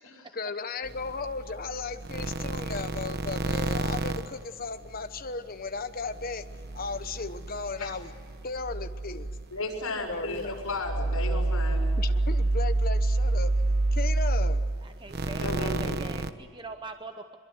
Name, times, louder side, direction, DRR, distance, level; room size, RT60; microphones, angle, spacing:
voice 1, 0.3-6.5 6.7-8.1 8.4-9.3 10.1-10.6 12.0-13.5 13.9-14.6, left 4 dB, 40° left, 9 dB, 1.1 m, -35 dB
sound 1, 0.8-5.3 5.6-16.3, right 2 dB, 50° right, 1.0 m, -29 dB
voice 2, 9.5-11.9 15.4-16.0, left 2 dB, 75° left, 0 dB, 6.7 m, -34 dB
voice 3, 14.8-17.4, right 3 dB, 20° right, 7 dB, 0.9 m, -42 dB
24.5 x 22.0 x 8.0 m, 2.1 s
head